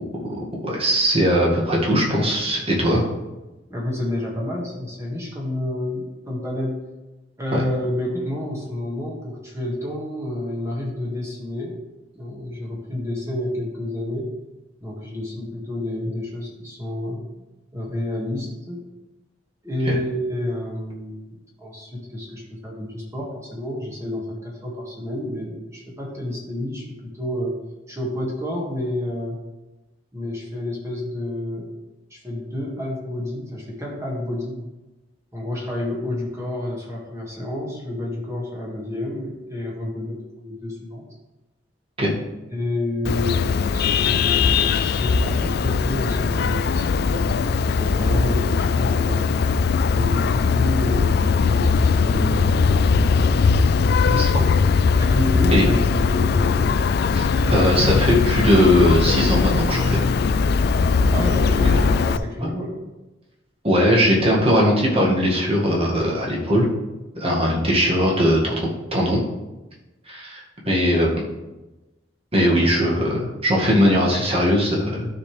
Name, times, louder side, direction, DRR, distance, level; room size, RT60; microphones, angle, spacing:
voice 1, 0.3-3.0 7.5-7.6 19.9-20.0 42.0-42.1 54.1-54.5 55.5-55.7 57.1-60.0 61.7-61.8 63.6-66.7 67.2-69.2 70.1-71.1 72.3-75.1, equal, 30° right, -3 dB, 2.0 m, -20 dB
voice 2, 3.7-6.8 7.4-11.8 12.1-14.4 14.8-17.2 17.7-18.8 19.6-27.5 27.9-29.4 30.1-31.7 32.1-34.6 35.3-41.0 42.5-49.3 49.9-53.3 55.0-56.7 61.1-62.8, left 1 dB, 15° right, -4 dB, 1.9 m, -29 dB
Vehicle horn car horn honking, 43.0-62.2, left 5 dB, 60° left, 0.4 m, -20 dB
12.5 x 5.1 x 3.4 m, 1.1 s
head